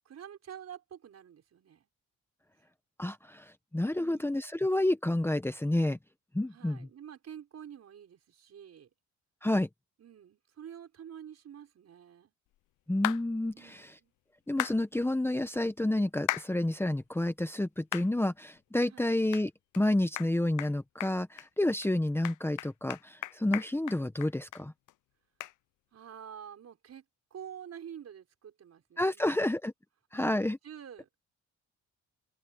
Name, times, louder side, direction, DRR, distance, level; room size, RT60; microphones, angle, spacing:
voice 1, 0.0-1.9 3.9-4.4 6.5-8.9 10.0-12.3 13.5-14.1 18.9-19.1 25.9-27.0 27.3-29.5 30.1-31.1, right 9 dB, 55° right, 5.4 m, -48 dB
voice 2, 3.0-6.0 6.3-6.9 9.4-9.7 12.9-13.9 14.5-19.5 19.8-24.7 29.0-29.7 30.1-30.6, left 1 dB, 10° left, 1.2 m, -29 dB
sound 1, 13.0-13.2 14.6-14.8 16.3-16.5 17.0-17.1 17.9-18.1 18.6-18.7 19.3-19.4 19.7-19.8 20.2-20.3 20.6-20.7 21.0-21.5 21.8-21.9 22.2-24.6 24.9-25.0 25.4-25.5, left 16 dB, 80° left, 0.7 m, -35 dB
open air
cardioid pair, 90°, 30 cm